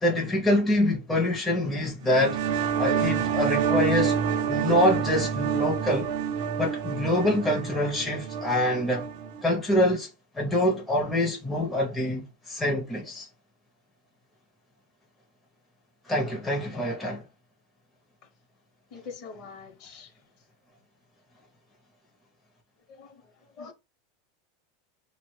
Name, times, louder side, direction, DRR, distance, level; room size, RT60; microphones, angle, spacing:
voice 1, 0.0-2.4 2.8-4.1 4.5-6.1 6.6-9.1 9.4-10.1 10.3-13.3 16.1-17.2, left 1 dB, 5° left, 0.5 m, -25 dB
sound 1, 2.0-9.4, right 7 dB, 55° right, 0.4 m, -28 dB
voice 2, 18.9-20.1 22.9-23.2 23.6-23.7, left 5 dB, 45° left, 0.7 m, -43 dB
3.2 x 2.0 x 3.1 m
supercardioid pair, 165°, 0 cm